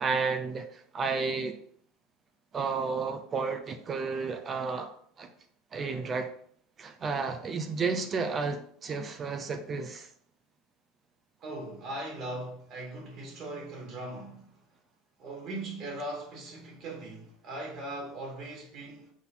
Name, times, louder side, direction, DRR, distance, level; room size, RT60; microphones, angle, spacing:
voice 1, 0.0-1.6 2.5-4.9 5.2-5.3 5.7-6.3 6.8-10.1, right 4 dB, 35° right, 0.6 m, -32 dB
voice 2, 11.4-14.6 15.2-19.1, right 1 dB, 55° right, 2.4 m, -39 dB
6.2 x 4.1 x 3.9 m
hypercardioid pair, 80°, 0 cm